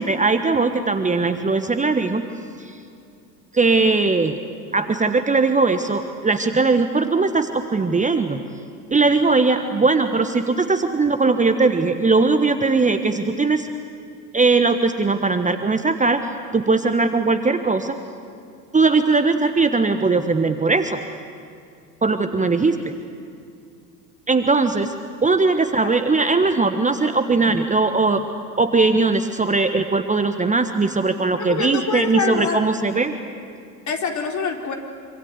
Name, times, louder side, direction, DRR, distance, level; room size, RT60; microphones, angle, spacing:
voice 1, 0.0-2.2 2.6-2.8 3.5-4.4 4.7-8.4 8.9-13.7 14.3-16.2 16.5-18.0 18.7-21.0 22.0-22.8 24.3-24.9 25.2-28.2 28.6-33.2, right 3 dB, 15° right, 8 dB, 1.4 m, -19 dB
voice 2, 31.3-32.6 33.9-34.7, left 5 dB, 35° left, 2 dB, 4.1 m, -25 dB
26.5 x 26.0 x 8.2 m, 2.4 s
figure-of-eight pair, 70°, 49 cm